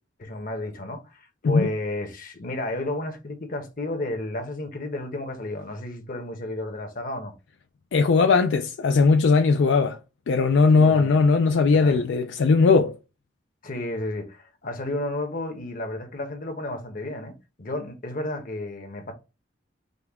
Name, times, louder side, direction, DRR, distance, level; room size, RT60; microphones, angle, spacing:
voice 1, 0.2-7.3 10.7-11.3 11.7-12.0 13.6-19.1, left 1 dB, 50° left, 0.9 m, -32 dB
voice 2, 7.9-10.0 10.3-12.9, left 4 dB, 75° left, 0.4 m, -19 dB
5.2 x 2.3 x 3.5 m
head